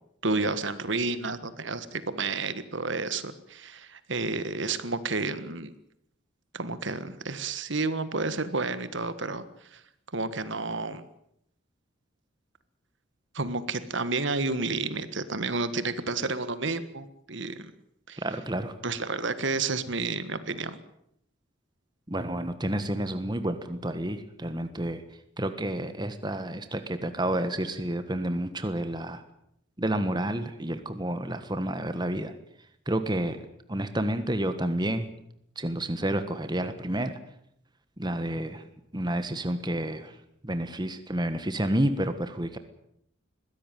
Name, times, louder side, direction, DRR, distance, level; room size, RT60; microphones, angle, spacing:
voice 1, 0.2-5.7 6.5-9.4 9.7-9.8 10.1-11.0 13.3-17.7 18.1-18.2 18.8-20.8, right 3 dB, 60° right, 12 dB, 1.5 m, -30 dB
voice 2, 18.2-18.8 22.1-25.0 25.4-29.2 29.8-32.3 32.9-33.4 33.7-35.1 35.5-37.2 38.0-38.7 38.9-42.6, right 1 dB, 20° right, 9 dB, 1.4 m, -30 dB
21.5 x 16.0 x 9.3 m, 0.75 s
head